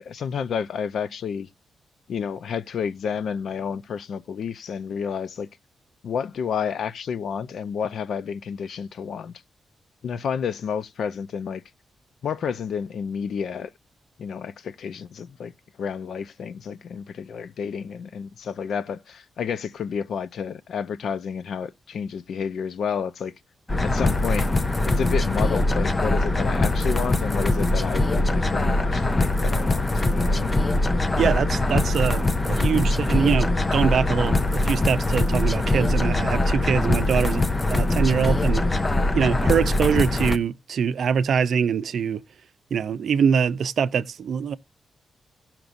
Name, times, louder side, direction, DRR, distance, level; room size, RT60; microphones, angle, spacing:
voice 1, 0.0-1.5 2.1-5.5 6.0-9.3 10.0-11.6 12.2-13.7 14.2-15.5 15.8-23.3 23.8-24.5 25.0-30.5 37.2-37.4, left 7 dB, 70° left, 0.5 m, -30 dB
sound 1, 23.7-40.4, left 2 dB, 20° left, 0.5 m, -22 dB
voice 2, 31.2-38.6 39.1-42.2 42.7-44.6, right 7 dB, 60° right, 0.5 m, -23 dB
17.0 x 5.9 x 2.5 m
wide cardioid pair, 155°, 0 cm